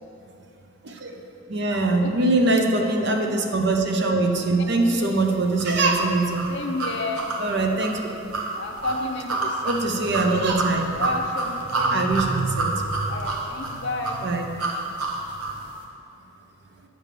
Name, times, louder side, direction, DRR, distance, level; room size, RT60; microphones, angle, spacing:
voice 1, 0.8-1.2 1.5-6.4 7.4-8.0 9.6-10.9 11.7-12.9 14.2-14.5, right 2 dB, 50° right, 3 dB, 0.6 m, -23 dB
voice 2, 1.7-2.1 2.8-2.9 4.6-5.2 6.5-7.3 8.5-9.6 11.0-11.9 13.1-14.2, left 2 dB, 55° left, 3 dB, 0.6 m, -31 dB
sound 1, 5.6-15.6, right 3 dB, 90° right, 1.0 m, -28 dB
8.6 x 3.4 x 6.6 m, 2.7 s
head